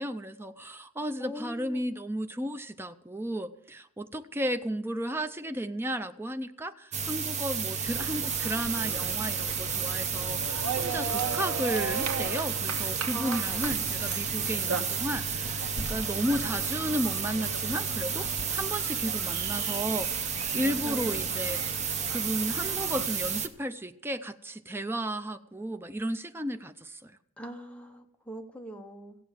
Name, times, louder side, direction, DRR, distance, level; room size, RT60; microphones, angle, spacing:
voice 1, 0.0-21.6 22.1-27.1, right 1 dB, 10° right, 8 dB, 0.5 m, -34 dB
voice 2, 1.2-1.8 13.1-13.7 20.8-21.3 27.4-29.2, equal, 5° left, 3 dB, 1.0 m, -41 dB
sound 1, 6.9-23.5, right 6 dB, 30° right, 0.9 m, -32 dB
sound 2, 7.8-23.1, right 4 dB, 85° right, 1.1 m, -38 dB
15.0 x 8.4 x 7.3 m, 0.77 s
head